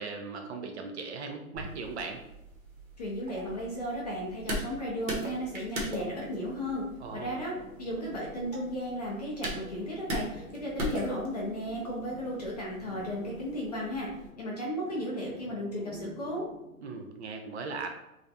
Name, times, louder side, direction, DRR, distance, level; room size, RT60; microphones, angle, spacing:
voice 1, 0.0-2.2 7.0-7.4 16.8-17.9, right 4 dB, 50° right, 4 dB, 0.4 m, -38 dB
sound 1, 1.5-14.3, right 1 dB, 70° right, 1.0 m, -40 dB
voice 2, 3.0-6.8 7.1-14.1 14.4-16.5, equal, 30° left, -3 dB, 0.4 m, -35 dB
sound 2, 5.1-16.8, left 4 dB, 70° left, 0.6 m, -50 dB
2.4 x 2.1 x 2.6 m, 0.88 s
hypercardioid pair, 140°, 43 cm